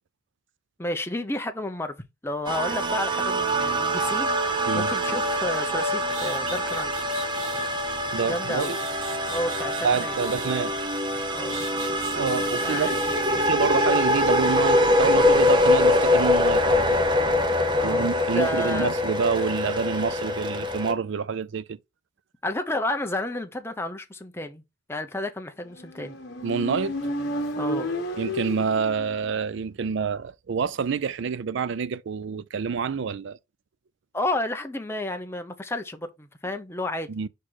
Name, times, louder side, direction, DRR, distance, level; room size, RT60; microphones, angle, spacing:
voice 1, 0.8-1.9 2.2-6.9 8.2-8.7 9.3-10.1 11.3-11.7 12.5-13.4 17.7-18.9 22.4-24.6 24.9-26.2 27.6-27.9 34.1-37.1, left 1 dB, 10° left, 0.7 m, -31 dB
sound 1, 2.5-20.9, left 1 dB, 25° right, 0.7 m, -24 dB
sound 2, 6.1-7.7 8.3-11.0 11.5-13.2, right 5 dB, 85° right, 1.4 m, -41 dB
voice 2, 8.1-8.8 9.8-10.7 12.1-13.0 13.4-17.0 17.8-21.8 26.4-27.0 28.2-33.4 37.1-37.3, right 6 dB, 60° right, 0.4 m, -27 dB
Motorcycle, 25.8-29.4, equal, 55° left, 1.5 m, -31 dB
4.9 x 4.4 x 4.5 m
head